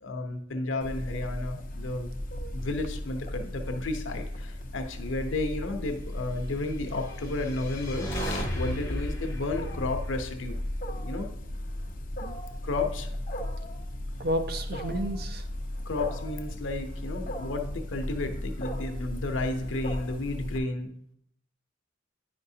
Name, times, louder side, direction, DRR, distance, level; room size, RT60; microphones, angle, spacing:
voice 1, 0.0-2.1 2.5-10.6 11.0-11.3 12.6-13.1 15.9-20.9, left 2 dB, 80° left, 6 dB, 0.8 m, -32 dB
Wild animals, 0.8-20.6, left 1 dB, 45° left, 0.8 m, -36 dB
sound 1, 7.0-11.3, left 1 dB, 15° left, 1.2 m, -36 dB
voice 2, 14.2-15.4, right 1 dB, 50° right, 7 dB, 0.6 m, -31 dB
9.6 x 5.2 x 2.7 m, 0.70 s
head